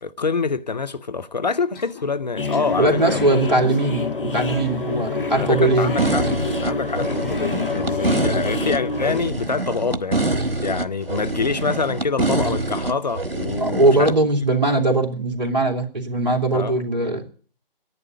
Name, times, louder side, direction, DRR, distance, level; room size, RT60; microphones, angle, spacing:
voice 1, 0.0-3.3 5.4-6.3 6.6-10.3 10.6-14.3 16.5-16.7, left 4 dB, 50° left, 0.7 m, -26 dB
sound 1, 1.7-2.1 2.5-2.7 3.1-3.4 4.3-4.7 5.6-6.3 7.4-8.0 8.4-9.3 9.6-9.8 10.3-11.0 12.3-12.5, left 4 dB, 25° left, 3.7 m, -42 dB
sound 2, 2.4-9.2, left 4 dB, 65° left, 1.7 m, -27 dB
voice 2, 2.8-5.9 13.6-17.3, right 2 dB, 50° right, 2.8 m, -20 dB
sound 3, 6.0-14.1, right 2 dB, 85° right, 1.3 m, -25 dB
11.0 x 8.7 x 9.7 m
figure-of-eight pair, 150°, 29 cm